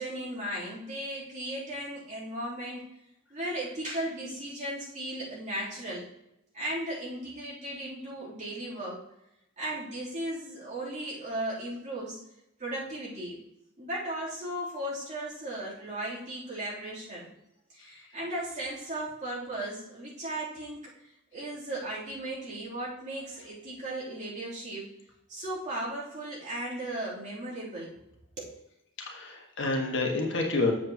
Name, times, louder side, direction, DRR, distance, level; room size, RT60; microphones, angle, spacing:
voice 1, 0.0-2.9 3.3-6.1 6.5-9.0 9.6-12.2 12.6-13.4 13.8-17.3 17.7-24.9 25.3-28.0 28.4-28.5, right 1 dB, 40° right, -7 dB, 3.1 m, -36 dB
voice 2, 29.0-30.7, left 3 dB, 65° left, 0 dB, 1.5 m, -28 dB
7.9 x 7.5 x 2.9 m, 0.86 s
head